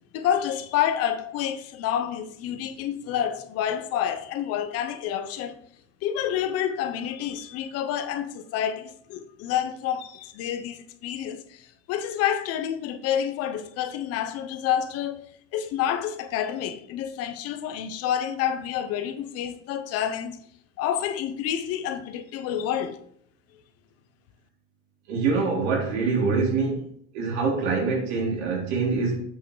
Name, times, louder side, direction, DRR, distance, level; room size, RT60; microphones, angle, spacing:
voice 1, 0.1-5.6 6.0-15.3 15.5-20.4 20.8-23.0, left 10 dB, 45° left, 0.8 m, -28 dB
voice 2, 25.1-26.8 27.1-29.2, right 4 dB, 75° right, 3.6 m, -25 dB
8.4 x 6.2 x 3.9 m
cardioid pair, 160°, 35 cm